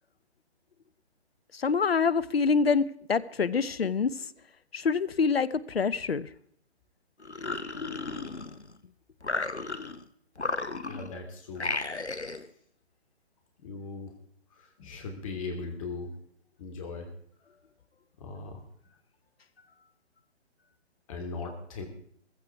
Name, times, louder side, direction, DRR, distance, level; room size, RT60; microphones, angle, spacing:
voice 1, 1.5-4.2 4.7-6.3, left 5 dB, 65° left, 18 dB, 0.9 m, -26 dB
sound 1, 7.2-8.8 9.2-10.0 10.4-11.2 11.6-12.5, left 3 dB, 85° left, 1.2 m, -34 dB
voice 2, 10.9-11.7 13.6-14.1 14.5-16.1 16.6-17.1 18.2-18.6 21.1-21.9, left 3 dB, 30° left, 4 dB, 3.0 m, -39 dB
15.5 x 15.0 x 4.7 m, 0.65 s
figure-of-eight pair, 140°, 33 cm